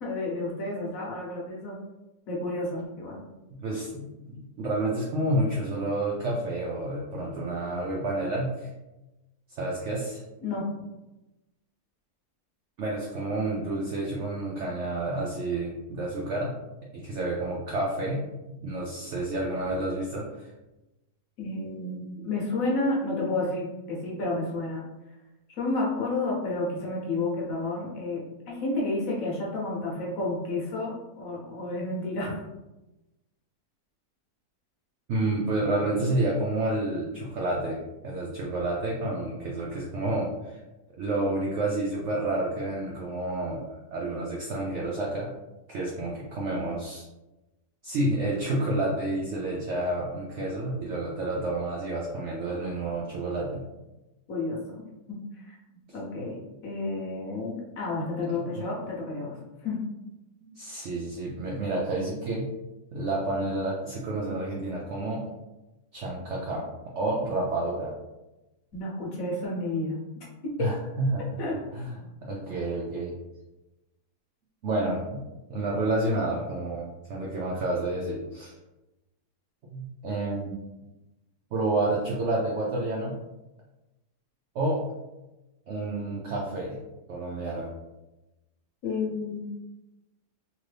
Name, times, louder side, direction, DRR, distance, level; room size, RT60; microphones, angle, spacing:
voice 1, 0.0-1.8 2.3-3.2 10.4-10.7 21.4-24.8 25.6-32.4 54.3-54.6 55.1-55.6 55.9-59.4 59.6-59.8 68.7-70.0 70.4-70.5 71.4-71.6 88.8-89.4, left 2 dB, 60° left, -3 dB, 1.1 m, -31 dB
voice 2, 3.5-8.7 9.5-10.2 12.8-16.5 16.9-18.2 18.6-20.5 35.1-40.6 41.0-43.7 43.9-45.3 45.7-47.0 47.8-53.6 58.3-58.7 60.4-62.5 62.9-65.2 65.9-66.7 67.0-67.9 70.6-71.4 71.7-71.9 72.2-73.1 74.6-75.2 75.5-78.5 79.7-80.5 81.5-83.3 84.5-84.8 85.7-86.8 87.1-87.7, right 2 dB, 70° right, -3 dB, 0.6 m, -29 dB
2.9 x 2.6 x 3.2 m, 1.0 s
omnidirectional pair, 1.7 m